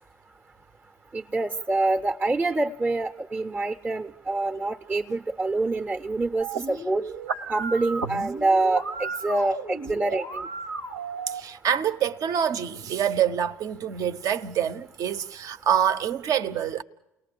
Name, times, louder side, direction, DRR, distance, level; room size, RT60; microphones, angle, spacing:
voice 1, 1.1-7.0 7.5-10.5, right 2 dB, 25° right, 0.7 m, -26 dB
sound 1, 6.4-11.4, right 4 dB, 85° right, 1.2 m, -33 dB
voice 2, 11.3-16.8, right 9 dB, 55° right, 0.8 m, -26 dB
29.0 x 19.0 x 6.9 m
hypercardioid pair, 60°, 7 cm